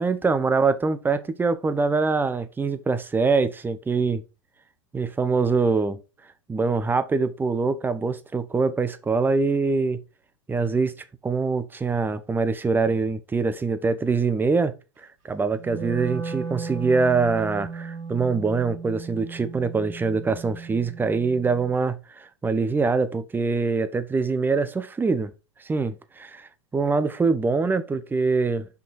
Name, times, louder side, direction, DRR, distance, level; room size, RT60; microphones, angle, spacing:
voice 1, 0.0-4.2 4.9-6.0 6.5-10.0 10.5-10.9 11.2-14.7 15.2-25.3 25.6-28.7, right 4 dB, 10° right, 0.8 m, -24 dB
Wind instrument woodwind instrument, 15.5-21.8, right 5 dB, 70° right, 2.8 m, -36 dB
5.5 x 5.3 x 4.1 m
hypercardioid pair, 105°, 17 cm